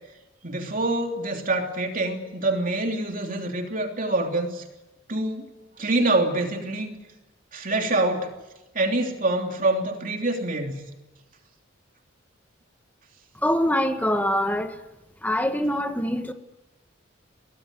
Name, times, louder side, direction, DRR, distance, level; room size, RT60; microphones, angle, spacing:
voice 1, 0.4-4.6 5.1-5.5 5.8-6.9 7.5-8.3 8.7-10.8, right 2 dB, 45° right, 3.1 m, -25 dB
voice 2, 13.4-14.8 15.2-16.3, equal, 10° left, 1.5 m, -24 dB
23.5 x 18.0 x 9.2 m
head